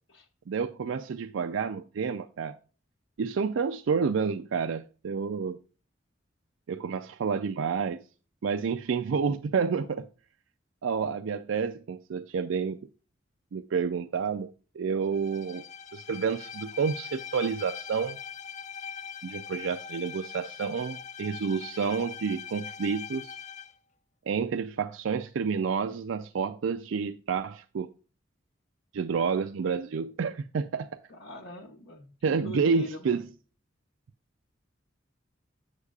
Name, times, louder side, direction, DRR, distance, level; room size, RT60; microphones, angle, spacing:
voice 1, 0.5-2.6 3.2-5.6 6.7-8.0 8.4-10.1 10.8-12.8 13.5-15.6 15.9-18.2 19.2-23.4 24.3-27.9 28.9-31.0 32.2-33.2, right 5 dB, 85° right, 0.4 m, -29 dB
Bowed string instrument, 15.1-23.8, left 7 dB, 40° left, 0.5 m, -42 dB
voice 2, 31.1-33.2, equal, 75° left, 1.0 m, -42 dB
8.1 x 7.3 x 2.3 m
head